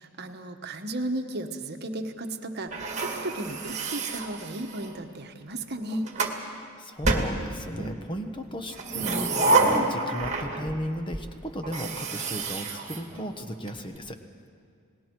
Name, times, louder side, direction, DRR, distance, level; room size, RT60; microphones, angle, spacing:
voice 1, 0.0-6.1, right 1 dB, 50° right, 6 dB, 1.2 m, -34 dB
sound 1, 2.7-5.0 5.7-6.4 7.0-8.0 8.7-10.8 11.1-11.2 11.6-13.7, right 3 dB, 30° right, 2.0 m, -28 dB
voice 2, 6.5-14.2, equal, 20° left, 6 dB, 1.2 m, -35 dB
29.5 x 19.5 x 4.6 m, 2.4 s
head